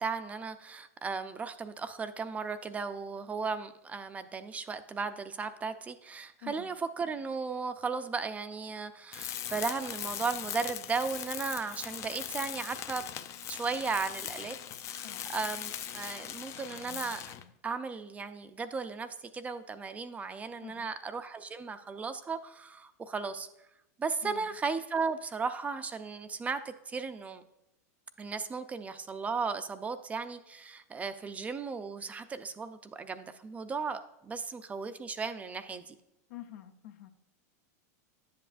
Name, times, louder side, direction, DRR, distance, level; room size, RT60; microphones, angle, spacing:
voice 1, 0.0-13.0 13.5-14.6 14.9-17.2 17.6-19.1 19.3-23.5 24.0-27.4 28.2-35.9, right 5 dB, 15° right, 10 dB, 0.4 m, -36 dB
voice 2, 6.4-6.7 15.0-15.3 20.6-20.9 24.2-24.5 36.3-37.1, left 13 dB, 70° left, 7 dB, 0.9 m, -47 dB
Tools, 9.1-17.5, left 10 dB, 35° left, 0.5 m, -40 dB
11.0 x 7.7 x 2.5 m, 0.90 s
supercardioid pair, 130°, 9 cm